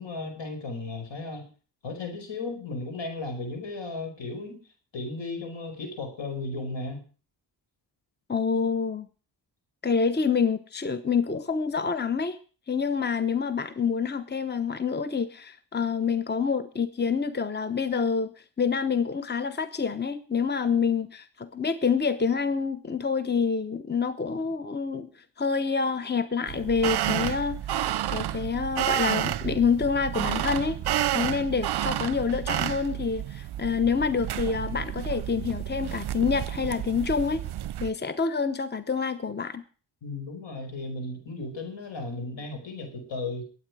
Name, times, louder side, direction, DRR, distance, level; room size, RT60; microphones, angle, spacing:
voice 1, 0.0-1.5 1.8-4.6 4.9-7.0 40.0-43.4, left 3 dB, 75° left, 5 dB, 5.3 m, -35 dB
voice 2, 8.3-9.1 9.8-12.4 12.7-18.3 18.6-25.1 25.4-27.6 28.1-30.8 31.1-37.4 37.8-39.6, left 5 dB, 20° left, 12 dB, 1.0 m, -27 dB
sound 1, 26.5-37.9, right 12 dB, 60° right, 0.6 m, -30 dB
22.0 x 8.8 x 4.8 m, 0.39 s
cardioid pair, 60°, 45 cm